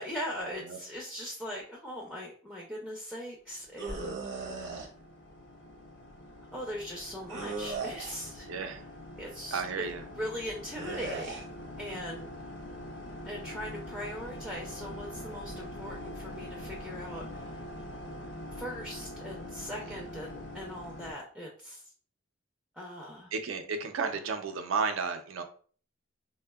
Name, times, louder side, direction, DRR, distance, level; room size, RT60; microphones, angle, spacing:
voice 1, 0.0-4.7 6.5-8.5 9.2-9.8 10.1-11.5 11.8-12.3 13.2-17.6 18.5-21.8 22.7-23.3, equal, 5° left, -3 dB, 0.4 m, -40 dB
sound 1, 3.6-21.1, left 1 dB, 60° left, 0.5 m, -44 dB
sound 2, 3.8-4.9 7.3-8.3 10.7-11.4, right 3 dB, 60° right, 0.7 m, -37 dB
voice 2, 8.5-8.8 9.5-10.0 19.9-20.0 23.3-25.4, right 5 dB, 90° right, 7 dB, 0.4 m, -33 dB
3.5 x 2.1 x 2.2 m, 0.43 s
head